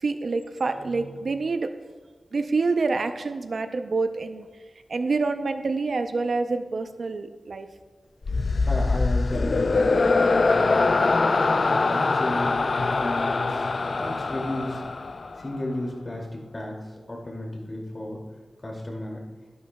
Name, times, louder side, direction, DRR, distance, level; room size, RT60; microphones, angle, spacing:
voice 1, 0.0-1.7 2.3-4.5 4.9-7.7, right 3 dB, 70° right, 8 dB, 0.6 m, -27 dB
sound 1, 8.2-15.6, left 3 dB, 60° left, 0.4 m, -23 dB
voice 2, 8.7-10.9 11.3-12.6 12.9-14.8 15.4-16.8 17.1-18.2 18.6-19.2, left 1 dB, 35° left, -1 dB, 2.5 m, -33 dB
12.5 x 11.0 x 2.3 m, 1.4 s
wide cardioid pair, 75°, 0 cm